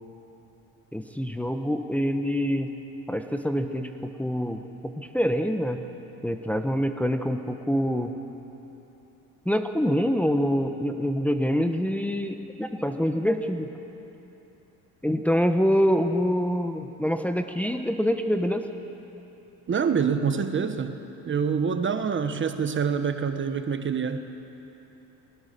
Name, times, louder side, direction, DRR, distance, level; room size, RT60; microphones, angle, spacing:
voice 1, 0.9-2.7 3.1-5.8 6.2-8.1 9.4-13.7 15.0-18.7, equal, 5° left, 5 dB, 1.0 m, -25 dB
voice 2, 19.7-21.0 21.2-24.2, right 6 dB, 35° right, 8 dB, 1.1 m, -26 dB
21.0 x 19.0 x 6.8 m, 3.0 s
cardioid pair, 100°, 36 cm